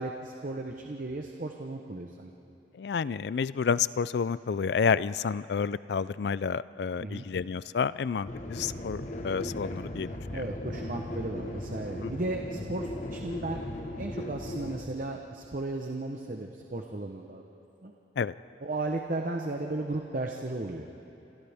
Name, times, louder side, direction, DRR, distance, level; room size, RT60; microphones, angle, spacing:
voice 1, 0.0-2.3 7.0-7.3 10.3-13.6 14.0-17.9 18.6-20.9, right 2 dB, 45° right, 3 dB, 0.9 m, -35 dB
voice 2, 2.7-10.4 12.0-12.1 18.2-18.3, left 6 dB, 65° left, 17 dB, 0.4 m, -30 dB
sound 1, 8.3-14.8, left 1 dB, 40° left, 1.3 m, -37 dB
28.0 x 26.5 x 3.5 m, 2.9 s
head